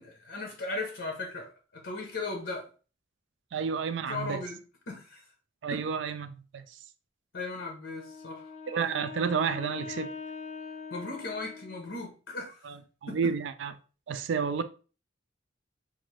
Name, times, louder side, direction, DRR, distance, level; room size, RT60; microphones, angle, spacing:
voice 1, 0.0-2.7 4.1-4.6 4.9-5.3 5.7-5.8 7.3-8.5 10.9-12.7 13.1-13.4, left 3 dB, 75° left, 0.8 m, -37 dB
voice 2, 3.5-4.4 5.6-6.8 8.7-10.1 12.6-13.7 14.1-14.6, right 6 dB, 70° right, 0.4 m, -31 dB
Wind instrument woodwind instrument, 7.9-12.1, left 5 dB, 40° left, 0.4 m, -43 dB
3.7 x 2.5 x 3.1 m
head